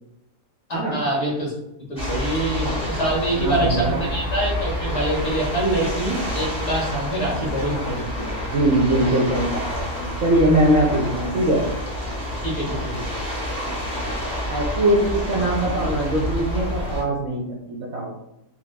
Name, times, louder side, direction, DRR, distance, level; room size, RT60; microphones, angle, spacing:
voice 1, 0.7-1.5 1.9-8.3 12.4-13.2, right 1 dB, 50° left, -3 dB, 1.3 m, -25 dB
sound 1, 2.0-17.0, equal, 5° left, 1.2 m, -28 dB
voice 2, 3.3-4.1 8.5-11.6 14.5-18.1, right 1 dB, 60° right, -3 dB, 0.7 m, -21 dB
6.0 x 2.4 x 2.2 m, 0.87 s
omnidirectional pair, 1.7 m